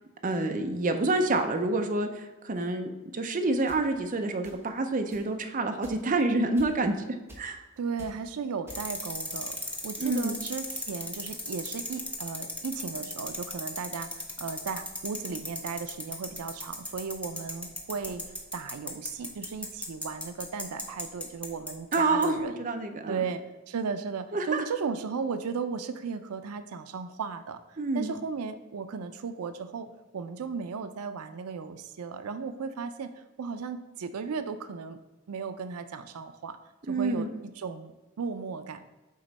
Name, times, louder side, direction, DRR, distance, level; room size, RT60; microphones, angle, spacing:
voice 1, 0.2-7.0 7.4-7.6 10.0-10.4 21.9-23.2 24.3-24.6 27.8-28.1 36.9-37.3, right 2 dB, 35° right, 5 dB, 0.5 m, -28 dB
sound 1, 3.7-3.8 4.4-4.8 5.1-5.3 5.8-6.1 6.6-6.9 7.3-7.6 8.0-8.2 8.7-9.1, right 1 dB, 10° right, 1.2 m, -48 dB
voice 2, 7.8-9.6 9.8-18.2 18.5-22.6 23.1-33.1 33.4-35.0 35.3-36.6 36.9-37.9 38.2-38.8, right 5 dB, 85° right, 10 dB, 0.4 m, -35 dB
sound 2, 8.7-22.0 22.2-22.3, left 2 dB, 5° left, 0.6 m, -36 dB
7.6 x 3.0 x 5.3 m, 1.1 s
head